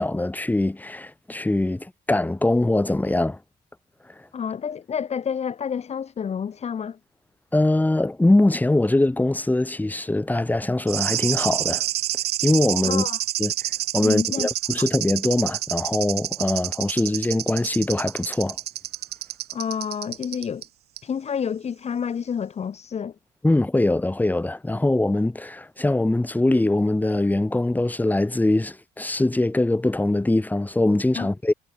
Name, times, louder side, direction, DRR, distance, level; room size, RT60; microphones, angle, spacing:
voice 1, 0.0-3.4 7.5-11.8 12.4-13.0 13.4-13.5 13.9-18.6 23.4-31.5, left 2 dB, 10° left, 7.4 m, -22 dB
voice 2, 4.3-7.0 12.8-13.2 14.0-14.5 14.8-14.9 19.5-20.6 21.0-23.1 31.1-31.3, left 7 dB, 40° left, 3.3 m, -29 dB
sound 1, 10.9-20.7 21.0-21.1, right 14 dB, 70° right, 3.3 m, -28 dB
cardioid pair, 110°, 17 cm